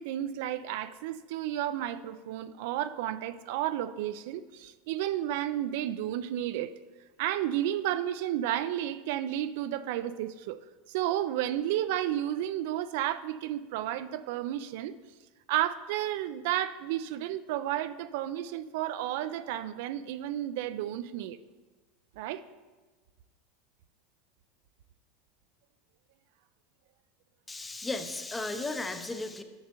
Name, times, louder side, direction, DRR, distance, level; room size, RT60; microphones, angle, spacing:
voice 1, 0.0-6.7 7.2-10.6 10.9-14.9 15.5-21.4 22.2-22.4, right 12 dB, 70° right, 12 dB, 0.3 m, -32 dB
voice 2, 27.5-29.4, left 2 dB, 10° left, 8 dB, 0.6 m, -35 dB
10.0 x 6.7 x 3.0 m, 1.3 s
supercardioid pair, 130°, 0 cm